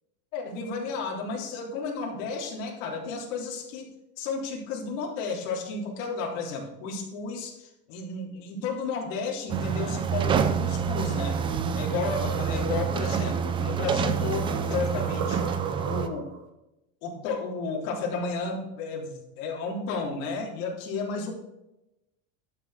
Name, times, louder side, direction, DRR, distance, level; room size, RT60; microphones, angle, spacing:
voice 1, 0.3-11.4 11.7-15.5 15.8-16.3 17.0-21.3, left 4 dB, 65° left, -1 dB, 3.4 m, -32 dB
sound 1, 9.5-16.1, right 7 dB, 15° right, 0.3 m, -27 dB
sound 2, 11.4-16.4, right 6 dB, 75° right, 2.5 m, -38 dB
11.5 x 6.9 x 4.9 m, 0.91 s
supercardioid pair, 160°, 41 cm